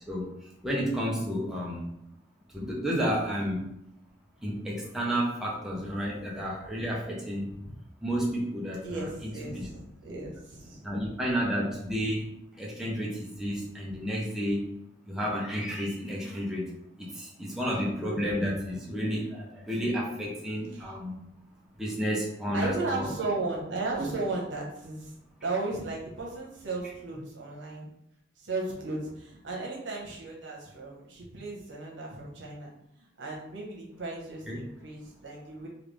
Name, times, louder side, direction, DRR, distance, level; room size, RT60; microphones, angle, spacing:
voice 1, 0.6-1.8 2.5-3.7 4.4-7.6 8.0-9.7 10.8-14.7 15.1-21.2 21.8-23.1 34.5-34.6, equal, 5° right, -4 dB, 0.5 m, -31 dB
voice 2, 8.8-10.8 20.7-20.9 22.5-25.1 25.4-27.9 28.4-32.7 33.0-35.7, right 3 dB, 75° right, -2 dB, 0.9 m, -35 dB
3.2 x 2.4 x 3.2 m, 0.78 s
head